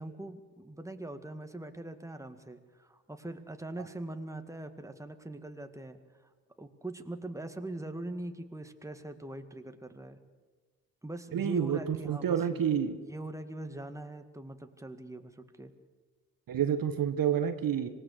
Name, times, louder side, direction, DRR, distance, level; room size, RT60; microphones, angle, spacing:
voice 1, 0.0-6.3 6.6-10.2 11.0-12.7 13.0-15.7, right 1 dB, 5° right, 7 dB, 2.0 m, -42 dB
voice 2, 11.3-13.0 16.5-17.9, right 8 dB, 50° right, 9 dB, 1.5 m, -29 dB
26.0 x 18.0 x 6.7 m, 1.4 s
hypercardioid pair, 40°, 43 cm